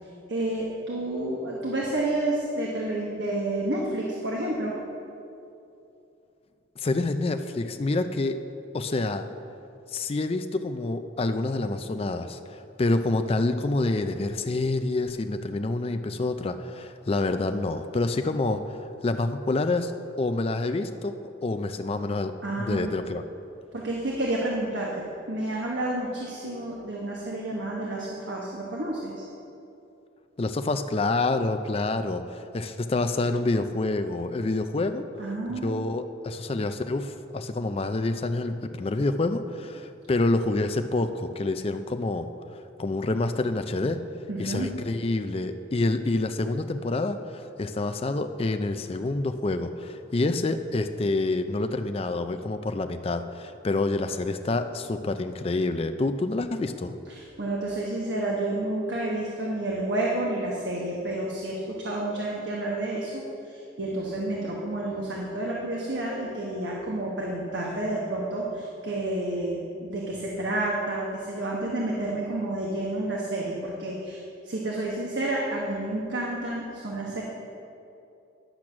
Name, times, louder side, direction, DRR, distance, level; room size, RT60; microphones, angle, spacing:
voice 1, 0.3-4.8 22.4-23.0 23.7-29.3 35.2-35.8 44.3-44.7 57.1-77.2, right 1 dB, 70° right, -3 dB, 1.1 m, -30 dB
voice 2, 6.8-8.4 8.7-9.3 9.9-18.8 19.0-19.9 20.2-21.1 21.4-22.3 22.6-23.2 30.4-35.0 35.5-42.3 42.8-44.0 44.4-56.9, left 2 dB, 30° left, 8 dB, 0.4 m, -27 dB
10.5 x 6.2 x 6.1 m, 2.7 s
head